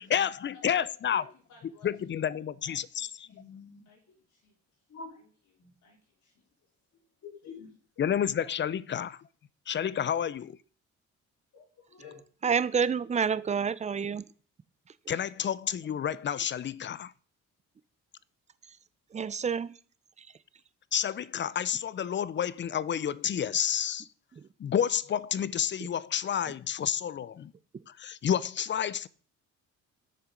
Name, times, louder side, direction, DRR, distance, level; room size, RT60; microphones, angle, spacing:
voice 1, 0.0-1.2 1.8-3.1 8.0-9.2 9.7-10.6 15.1-17.1 20.9-24.1 24.6-27.5 28.0-29.1, left 9 dB, 40° left, 0.5 m, -30 dB
voice 2, 0.5-2.1 2.6-3.6 3.8-4.0 4.4-4.5 5.1-7.0, left 4 dB, 75° left, 4.2 m, -60 dB
voice 3, 3.3-3.9 4.9-5.1 5.6-5.7 7.2-7.8 11.5-12.2, left 5 dB, 55° left, 4.0 m, -47 dB
voice 4, 12.4-14.2 14.9-15.0 18.6-18.8 19.1-19.8 20.2-20.4 24.3-24.5 27.7-27.8, right 6 dB, 25° right, 0.5 m, -29 dB
7.5 x 6.7 x 5.1 m
cardioid pair, 90°, 30 cm